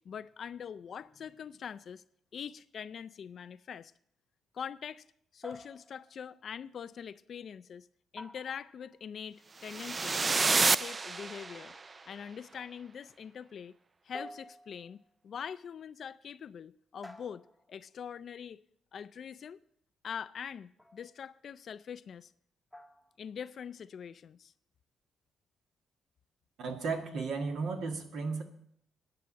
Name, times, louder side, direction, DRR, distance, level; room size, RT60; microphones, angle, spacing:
voice 1, 0.0-2.0 2.3-3.9 4.5-5.0 5.3-7.9 8.1-10.3 10.5-11.8 12.1-13.7 14.0-18.6 18.9-19.6 20.0-22.3 23.2-24.5, left 7 dB, 55° left, 0.4 m, -43 dB
sound 1, 5.4-6.2 8.2-9.0 10.5-11.1 12.5-12.9 14.1-15.1 17.0-17.8 20.8-21.1 22.7-23.2, left 1 dB, ahead, 0.9 m, -50 dB
sound 2, 9.6-11.8, right 4 dB, 30° right, 0.3 m, -29 dB
voice 2, 26.6-28.4, right 4 dB, 70° right, 1.6 m, -34 dB
10.5 x 5.8 x 8.7 m
cardioid pair, 90°, 0 cm